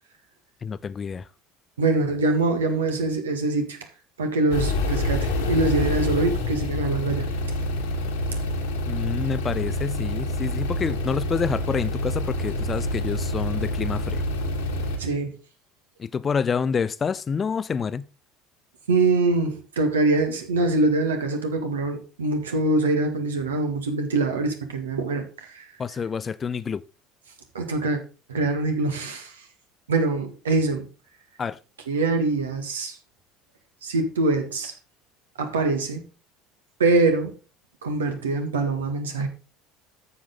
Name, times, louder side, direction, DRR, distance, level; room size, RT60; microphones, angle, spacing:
voice 1, 0.6-1.2 8.9-14.2 16.0-18.0 25.8-26.8 31.4-31.6, left 6 dB, 30° left, 0.4 m, -28 dB
voice 2, 1.8-3.8 4.2-7.3 10.9-11.0 15.0-15.3 18.9-25.6 27.5-28.0 28.3-29.3 29.9-30.9 31.9-33.0 33.8-34.7 35.4-36.0 36.8-37.3 37.8-39.3, right 3 dB, 75° right, 1.6 m, -24 dB
sound 1, 4.5-15.0, left 1 dB, 65° left, 1.7 m, -27 dB
9.6 x 7.3 x 3.8 m
figure-of-eight pair, 65°, 0 cm